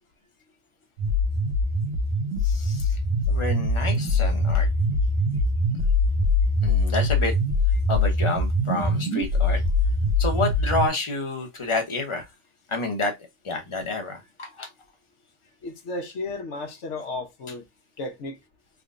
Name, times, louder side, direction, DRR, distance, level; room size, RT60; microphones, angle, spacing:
sound 1, 1.0-10.9, left 1 dB, 80° right, 1.4 m, -23 dB
voice 1, 2.4-3.0 3.3-4.7 6.6-7.4 7.7-9.6 10.2-12.2 12.7-13.1 13.4-14.7, left 3 dB, 30° left, 0.9 m, -29 dB
voice 2, 15.6-17.6 18.0-18.4, left 2 dB, 75° left, 1.2 m, -33 dB
3.7 x 3.1 x 2.5 m
omnidirectional pair, 1.2 m